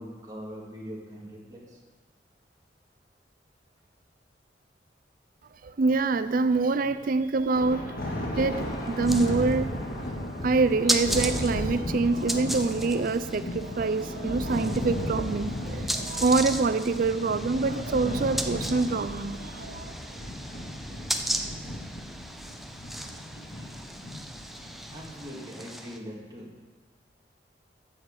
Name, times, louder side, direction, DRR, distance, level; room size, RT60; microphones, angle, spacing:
voice 1, 0.0-1.8 23.3-23.7 24.9-26.6, equal, 20° right, -4 dB, 2.3 m, -42 dB
voice 2, 5.6-7.9 8.3-9.7 10.4-19.9, right 3 dB, 50° right, 12 dB, 0.4 m, -26 dB
Thunder, 7.5-25.2, left 1 dB, 60° left, 2.0 m, -35 dB
sound 1, 8.6-26.0, right 1 dB, ahead, 0.6 m, -36 dB
9.9 x 6.3 x 7.4 m, 1.3 s
head